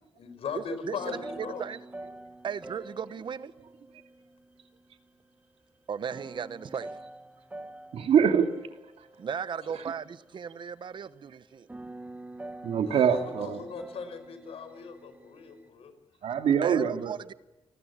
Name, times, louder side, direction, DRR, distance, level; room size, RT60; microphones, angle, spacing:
voice 1, 0.1-1.7 9.5-9.7 12.8-15.9, left 6 dB, 80° left, 9 dB, 5.2 m, -39 dB
sound 1, 1.0-5.1 6.1-10.5 11.4-15.7, right 2 dB, 15° right, 1.7 m, -46 dB
voice 2, 2.4-3.5 5.9-6.9 9.2-11.7 16.6-17.3, right 7 dB, 55° right, 15 dB, 1.1 m, -36 dB
voice 3, 7.9-8.5 9.7-9.9 12.6-13.6 16.2-17.1, right 7 dB, 85° right, 7 dB, 2.6 m, -24 dB
29.0 x 20.5 x 8.6 m, 0.94 s
wide cardioid pair, 130°, 10 cm